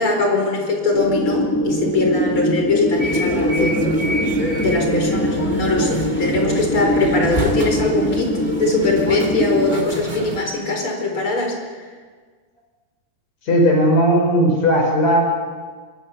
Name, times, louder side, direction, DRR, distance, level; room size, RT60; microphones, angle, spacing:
voice 1, 0.0-3.9 4.3-8.3 8.6-11.6, left 3 dB, 45° left, 2 dB, 5.2 m, -21 dB
sound 1, 0.9-9.8, equal, 5° left, 2.6 m, -22 dB
sound 2, 2.9-10.4, right 1 dB, 15° right, 2.3 m, -27 dB
voice 2, 13.5-15.2, equal, 70° left, 1 dB, 7.1 m, -16 dB
25.0 x 23.0 x 7.0 m, 1.5 s
omnidirectional pair, 3.3 m